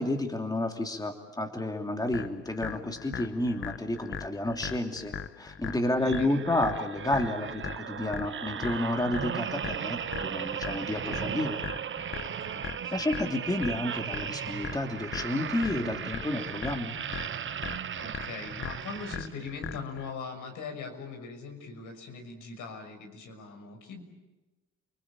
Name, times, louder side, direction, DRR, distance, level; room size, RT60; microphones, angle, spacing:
voice 1, 0.0-11.6 12.9-16.9, left 1 dB, 10° left, 4 dB, 2.9 m, -31 dB
sound 1, 2.1-20.1, left 7 dB, 40° left, 1.2 m, -40 dB
voice 2, 5.8-6.4 12.3-13.0 18.0-24.0, left 4 dB, 80° left, 4 dB, 6.3 m, -41 dB
sound 2, 6.0-19.6 20.1-20.3, right 8 dB, 40° right, 0.8 m, -37 dB
30.0 x 21.0 x 9.0 m, 1.1 s
cardioid pair, 90°, 30 cm